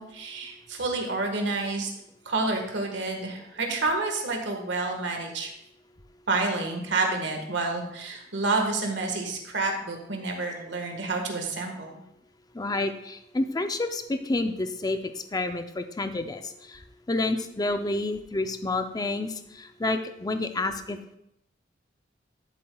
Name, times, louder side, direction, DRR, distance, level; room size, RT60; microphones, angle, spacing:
voice 1, 0.0-1.9 2.3-5.5 6.3-12.0, right 3 dB, 70° right, 3 dB, 1.6 m, -29 dB
voice 2, 12.5-16.8 17.1-21.2, left 2 dB, 20° left, 8 dB, 0.5 m, -29 dB
11.5 x 7.5 x 2.3 m, 0.81 s
head